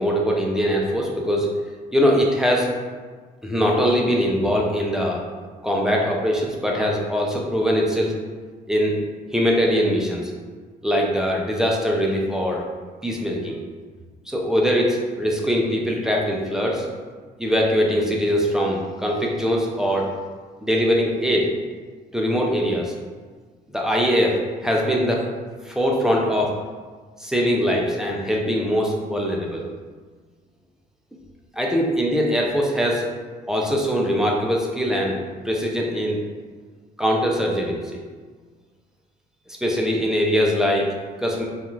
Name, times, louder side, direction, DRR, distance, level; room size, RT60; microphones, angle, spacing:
voice 1, 0.0-1.5 1.9-2.7 3.4-5.2 5.6-8.1 8.7-9.0 9.3-10.3 10.8-12.6 13.0-13.6 14.3-16.9 17.4-20.1 20.6-21.5 22.1-22.9 23.7-25.2 25.6-26.5 27.2-29.6 31.5-33.0 33.5-35.2 35.4-36.2 37.0-38.0 39.5-40.9 41.2-41.5, equal, 5° right, -2 dB, 0.4 m, -22 dB
2.4 x 2.4 x 3.0 m, 1.5 s
cardioid pair, 110°, 17 cm